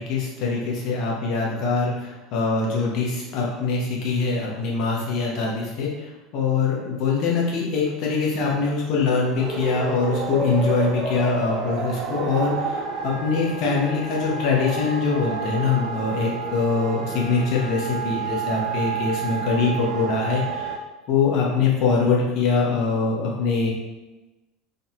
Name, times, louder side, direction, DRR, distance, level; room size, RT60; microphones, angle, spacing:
voice 1, 0.0-20.7 21.1-23.7, left 4 dB, 50° left, -3 dB, 0.9 m, -23 dB
sound 1, 9.4-20.8, right 5 dB, 50° right, 0.4 m, -30 dB
3.9 x 2.7 x 2.2 m, 1.1 s
figure-of-eight pair, 70°, 0 cm